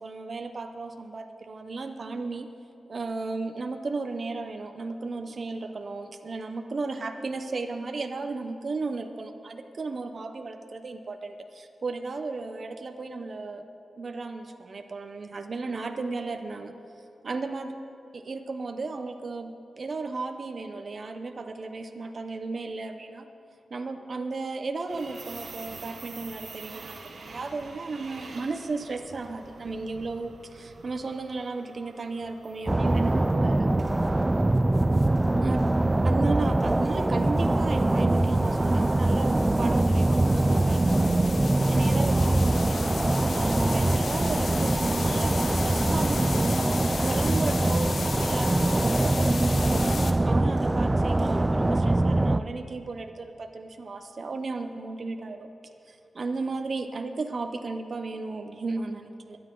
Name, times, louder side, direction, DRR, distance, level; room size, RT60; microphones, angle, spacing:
voice 1, 0.0-2.5 2.9-13.6 14.0-16.7 17.2-17.7 18.1-23.3 23.7-33.8 35.4-35.6 36.0-41.1 41.7-46.6 47.0-47.9 48.2-55.5 55.9-59.4, right 3 dB, 45° right, 6 dB, 0.8 m, -34 dB
sound 1, 24.9-38.9, right 3 dB, 60° right, 1.5 m, -48 dB
sound 2, 32.7-52.4, right 2 dB, 15° right, 0.3 m, -23 dB
sound 3, 34.8-35.1 37.2-50.1, left 4 dB, 60° left, 0.9 m, -37 dB
23.0 x 9.7 x 3.9 m, 2.8 s
wide cardioid pair, 150°, 0 cm